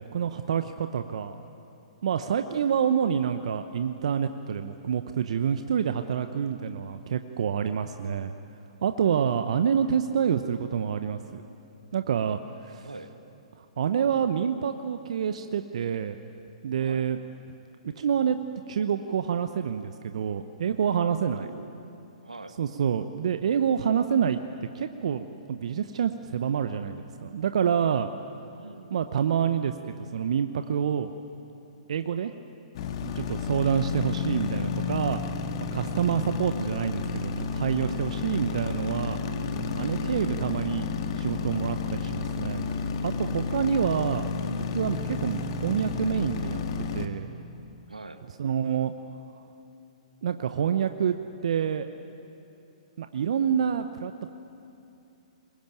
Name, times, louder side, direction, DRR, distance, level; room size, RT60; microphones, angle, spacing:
voice 1, 0.0-1.4 2.0-8.3 8.8-11.4 11.9-12.9 13.8-16.2 16.6-17.2 17.8-18.4 18.7-21.5 22.6-24.4 24.7-28.1 28.9-31.1 31.9-32.3 33.0-35.2 35.7-39.2 39.8-40.9 41.2-42.7 43.0-46.6 46.9-47.3 48.4-48.9 50.2-51.1 51.4-51.9 53.0-54.3, right 8 dB, 60° right, 9 dB, 0.9 m, -27 dB
voice 2, 12.8-13.1 16.8-17.1 21.1-21.7 22.2-22.6 28.5-29.0 39.8-40.2 47.9-48.2, right 3 dB, 90° right, 8 dB, 1.7 m, -43 dB
sound 1, 32.7-47.1, left 5 dB, 50° left, 1.7 m, -31 dB
23.0 x 20.5 x 9.1 m, 2.8 s
figure-of-eight pair, 120°, 4 cm